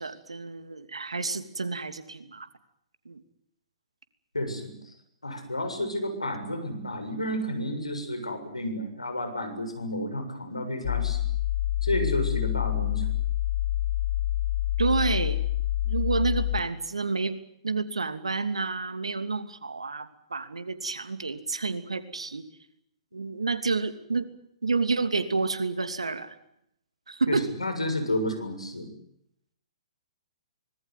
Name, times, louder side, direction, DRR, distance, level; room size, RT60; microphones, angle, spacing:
voice 1, 0.0-2.5 3.0-3.2 14.8-15.4 15.8-17.4 17.6-22.5 23.1-24.3 24.6-26.4 27.1-27.5, right 4 dB, 80° right, 10 dB, 2.9 m, -29 dB
voice 2, 4.3-4.9 5.2-11.3 11.8-13.1 27.3-28.9, left 1 dB, 85° left, 7 dB, 7.2 m, -31 dB
sound 1, 10.8-16.6, left 14 dB, 50° left, 1.4 m, -27 dB
25.0 x 19.5 x 9.5 m, 0.75 s
figure-of-eight pair, 120°, 3 cm